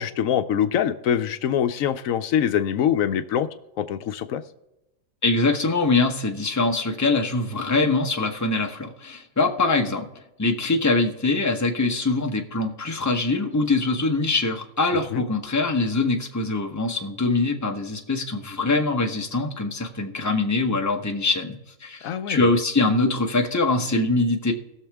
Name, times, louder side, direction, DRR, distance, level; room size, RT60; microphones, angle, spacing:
voice 1, 0.0-3.5 3.8-4.4 15.1-15.2 22.0-22.5, left 9 dB, 75° left, 10 dB, 1.0 m, -24 dB
voice 2, 5.2-10.1 10.4-24.5, left 3 dB, 15° left, 3 dB, 0.9 m, -23 dB
19.5 x 6.5 x 3.5 m, 0.91 s
omnidirectional pair, 1.4 m